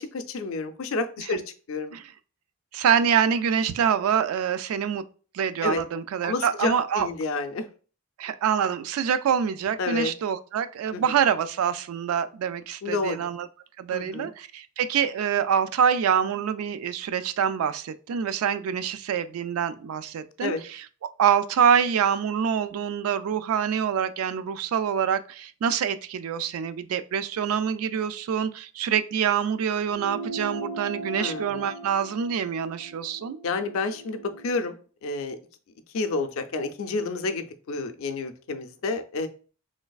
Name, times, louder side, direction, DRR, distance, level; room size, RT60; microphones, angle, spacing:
voice 1, 0.0-1.4 1.7-2.0 5.6-5.8 6.2-7.7 9.8-10.1 10.9-11.2 12.8-13.3 13.9-14.3 20.4-20.6 31.2-31.6 33.4-34.7 35.0-35.4 35.9-39.3, left 3 dB, 75° left, 0.4 m, -29 dB
voice 2, 2.7-5.0 5.3-7.1 8.2-13.5 13.8-20.8 21.2-33.4, right 8 dB, 85° right, 0.3 m, -25 dB
sound 1, 29.9-34.7, right 2 dB, 40° right, 0.6 m, -38 dB
3.2 x 3.2 x 2.3 m
head